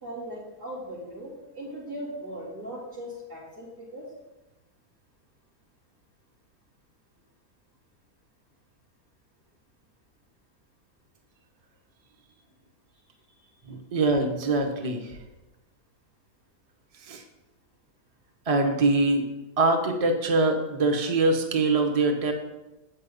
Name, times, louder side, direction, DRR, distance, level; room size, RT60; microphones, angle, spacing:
voice 1, 0.0-4.0 13.3-13.4, equal, 90° right, -9 dB, 3.4 m, -39 dB
voice 2, 13.6-15.2 17.1-17.2 18.5-19.3 19.6-22.3, right 2 dB, 30° right, 4 dB, 0.8 m, -23 dB
8.6 x 6.0 x 5.4 m, 1.0 s
omnidirectional pair, 1.7 m